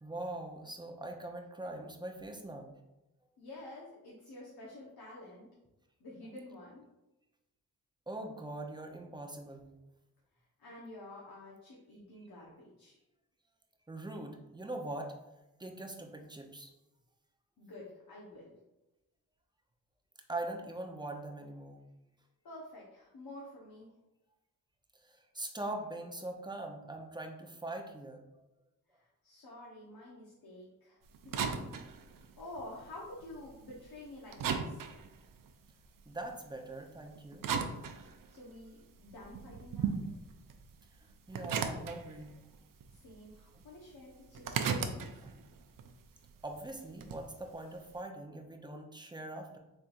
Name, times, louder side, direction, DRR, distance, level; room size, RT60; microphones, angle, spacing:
voice 1, 0.0-2.7 8.1-9.7 13.9-15.1 15.6-16.7 20.3-21.8 25.0-28.2 36.1-37.5 39.0-39.1 41.3-42.4 43.5-43.6 45.2-45.4 46.4-49.6, right 2 dB, 10° right, 3 dB, 0.8 m, -42 dB
voice 2, 3.4-5.5 6.0-6.8 10.6-13.0 17.6-18.5 22.4-23.9 28.9-32.0 32.4-34.8 38.3-40.0 42.9-45.3, left 1 dB, 60° left, -5 dB, 1.2 m, -49 dB
sound 1, 31.1-34.0 34.3-36.3 37.0-38.6 39.0-42.6 42.8-43.6 43.9-47.3, right 6 dB, 55° right, 0.6 m, -37 dB
4.3 x 3.4 x 2.6 m, 0.97 s
supercardioid pair, 45°, 40 cm